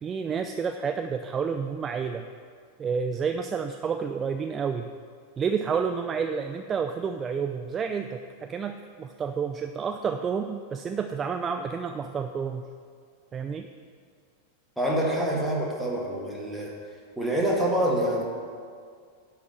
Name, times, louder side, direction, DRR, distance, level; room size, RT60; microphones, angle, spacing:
voice 1, 0.0-2.3 2.8-4.9 5.4-12.7 13.3-13.7, right 6 dB, 25° right, 8 dB, 0.3 m, -30 dB
voice 2, 14.8-16.7 17.2-18.2, right 1 dB, ahead, -4 dB, 1.9 m, -26 dB
10.5 x 4.0 x 7.5 m, 2.1 s
figure-of-eight pair, 90°, 0 cm